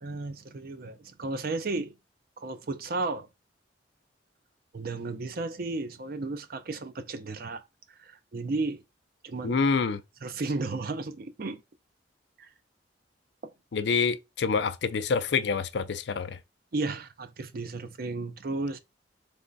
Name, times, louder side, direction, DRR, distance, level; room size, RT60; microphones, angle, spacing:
voice 1, 0.0-1.9 2.4-3.3 4.7-7.6 8.0-8.8 9.2-9.6 10.2-11.6 12.4-12.5 16.7-18.8, right 3 dB, 50° right, 0.5 m, -33 dB
voice 2, 9.4-10.0 13.7-16.4, left 5 dB, 65° left, 0.4 m, -27 dB
3.5 x 3.2 x 3.9 m
head